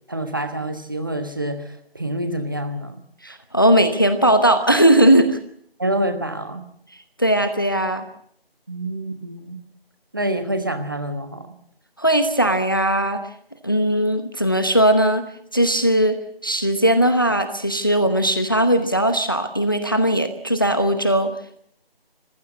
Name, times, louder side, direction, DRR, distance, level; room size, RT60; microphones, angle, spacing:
voice 1, 0.1-3.0 5.8-6.7 8.7-9.6 10.1-11.5, right 1 dB, 20° right, 8 dB, 1.3 m, -27 dB
voice 2, 3.2-5.4 7.2-8.0 12.0-13.2 13.6-15.2 15.5-21.3, right 1 dB, 20° left, 9 dB, 0.9 m, -18 dB
26.5 x 15.5 x 8.4 m, 0.68 s
figure-of-eight pair, 165°, 30 cm